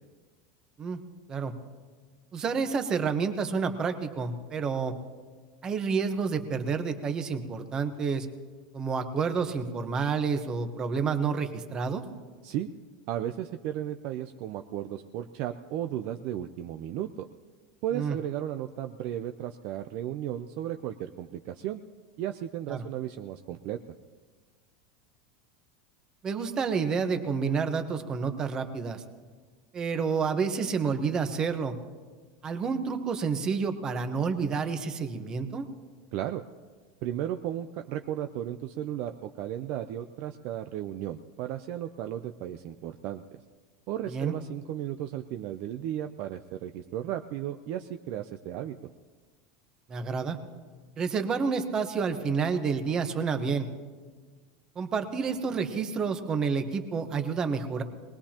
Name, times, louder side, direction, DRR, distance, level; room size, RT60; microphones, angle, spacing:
voice 1, 2.3-4.9 5.6-8.3 8.7-12.0 17.9-18.2 22.7-22.9 26.2-29.0 29.7-31.7 32.4-35.7 44.1-44.3 49.9-50.4 51.0-53.7 54.7-57.8, right 5 dB, 20° right, 7 dB, 1.0 m, -29 dB
voice 2, 13.1-17.3 17.8-21.8 22.2-23.8 36.1-36.4 37.0-43.2 43.9-48.7, right 11 dB, 45° right, 7 dB, 0.5 m, -34 dB
23.0 x 20.0 x 2.9 m, 1.4 s
supercardioid pair, 165°, 4 cm